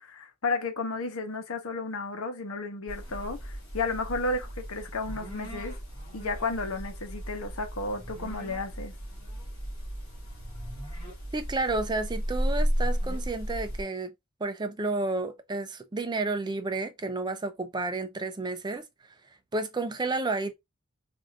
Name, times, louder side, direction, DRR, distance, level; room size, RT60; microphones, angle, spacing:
voice 1, 0.0-5.8 6.1-8.9, left 3 dB, 80° left, 1.0 m, -33 dB
sound 1, 2.9-13.8, equal, 25° left, 2.8 m, -34 dB
voice 2, 11.3-14.1 14.4-18.9 19.5-20.5, right 3 dB, 20° right, 0.4 m, -31 dB
4.8 x 2.6 x 2.4 m
head